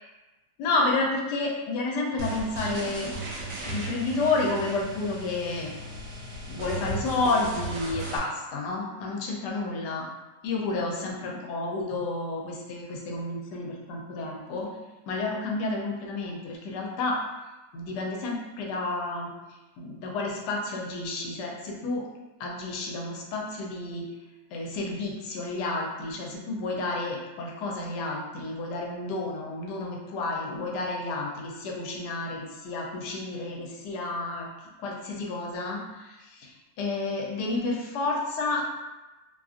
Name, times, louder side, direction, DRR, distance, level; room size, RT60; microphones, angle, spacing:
voice 1, 0.6-3.1 3.6-5.8 6.5-10.0 10.4-14.8 15.1-17.2 17.7-19.3 19.8-22.0 22.4-24.0 24.5-34.5 34.8-38.6, left 3 dB, 75° left, -1 dB, 1.1 m, -30 dB
sound 1, 2.2-8.2, right 2 dB, 85° right, 1.2 m, -36 dB
2.9 x 2.4 x 2.4 m, 1.1 s
omnidirectional pair, 1.8 m